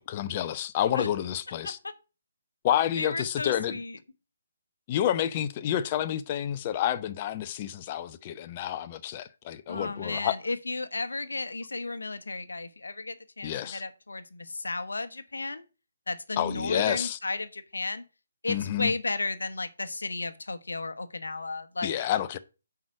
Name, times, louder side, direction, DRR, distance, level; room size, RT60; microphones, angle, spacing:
voice 1, 0.0-1.8 2.6-3.8 4.9-10.4 13.4-13.8 16.4-17.2 18.5-18.9 21.8-22.4, left 11 dB, 30° left, 0.7 m, -29 dB
voice 2, 3.0-4.0 9.7-15.6 16.1-18.0 18.4-22.0, left 3 dB, 70° left, 1.1 m, -33 dB
7.4 x 4.9 x 5.9 m
figure-of-eight pair, 140°, 0 cm